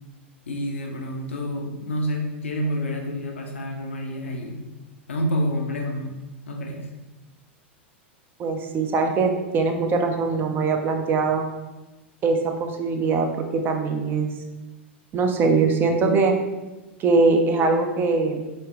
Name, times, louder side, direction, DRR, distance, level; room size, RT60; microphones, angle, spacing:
voice 1, 0.5-4.6 5.1-6.1 6.5-6.9, equal, 85° left, 2 dB, 0.6 m, -28 dB
voice 2, 8.4-11.5 12.2-14.3 15.1-16.4 17.0-18.4, right 4 dB, 30° right, 4 dB, 0.6 m, -22 dB
3.7 x 3.3 x 2.9 m, 1.1 s
hypercardioid pair, 95°, 7 cm